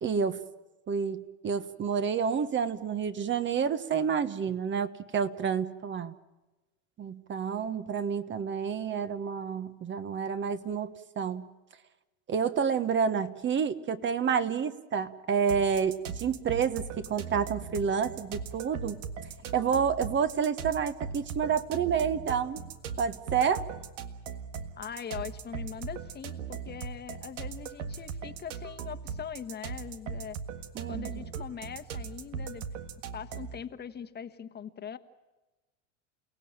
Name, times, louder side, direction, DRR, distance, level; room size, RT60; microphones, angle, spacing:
voice 1, 0.0-0.4 0.9-6.1 7.0-11.5 12.3-19.0 19.5-22.6 23.0-23.6 30.7-31.1, right 6 dB, 30° right, 11 dB, 1.3 m, -29 dB
sound 1, 15.5-33.6, right 6 dB, 85° right, 1.7 m, -39 dB
voice 2, 24.8-30.4 30.9-32.6 33.1-35.0, left 8 dB, 30° left, 10 dB, 1.4 m, -41 dB
29.5 x 17.5 x 8.8 m, 1.1 s
supercardioid pair, 110°, 36 cm